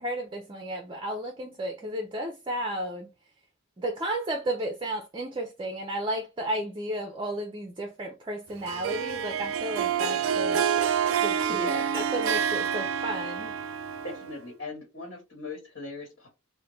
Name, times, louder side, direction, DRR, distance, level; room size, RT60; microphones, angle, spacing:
voice 1, 0.0-3.1 3.8-10.6 11.2-13.5, right 1 dB, 25° right, 0.5 m, -33 dB
Harp, 8.7-14.5, right 8 dB, 85° right, 0.4 m, -28 dB
voice 2, 11.5-11.9 14.0-16.3, left 2 dB, 60° left, 1.3 m, -38 dB
3.6 x 2.1 x 3.0 m
head